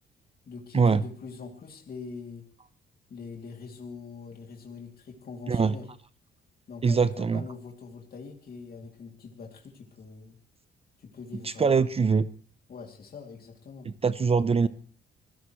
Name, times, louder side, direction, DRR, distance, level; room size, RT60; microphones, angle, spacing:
voice 1, 0.5-2.4 3.1-5.9 6.7-10.4 11.0-11.8 12.7-13.9, left 5 dB, 50° left, 1 dB, 2.7 m, -43 dB
voice 2, 6.8-7.4 11.4-12.3 13.9-14.7, right 5 dB, 30° right, 15 dB, 0.6 m, -23 dB
26.0 x 16.0 x 3.2 m, 0.43 s
cardioid pair, 90°, 20 cm